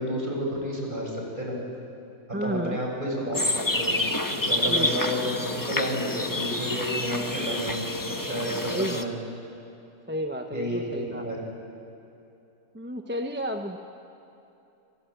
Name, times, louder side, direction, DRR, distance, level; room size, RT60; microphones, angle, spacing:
voice 1, 0.0-1.6 2.4-3.4 3.8-4.0 4.5-5.4 5.7-7.8 8.2-9.1 10.5-10.8 11.1-11.4, equal, 35° right, -1 dB, 7.0 m, -30 dB
voice 2, 2.3-2.8 4.7-5.0 8.7-9.1 10.1-11.3 12.7-13.8, right 1 dB, 10° right, 4 dB, 1.0 m, -32 dB
sound 1, 3.3-9.0, left 1 dB, 15° left, 1.2 m, -28 dB
28.0 x 26.0 x 8.1 m, 2.9 s
omnidirectional pair, 1.4 m